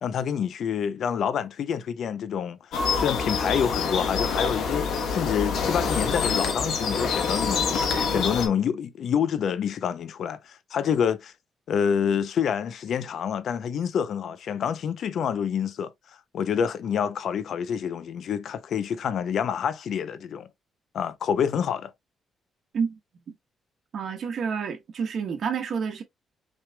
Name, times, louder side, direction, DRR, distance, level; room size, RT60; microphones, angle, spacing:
voice 1, 0.0-2.6 2.9-7.7 8.1-11.3 11.7-15.9 16.3-20.5 20.9-21.9, left 8 dB, 60° left, 0.6 m, -27 dB
sound 1, 2.7-8.5, left 5 dB, 85° left, 1.2 m, -26 dB
voice 2, 23.9-26.0, right 6 dB, 55° right, 1.1 m, -29 dB
6.2 x 3.2 x 2.3 m
cardioid pair, 155°, 0 cm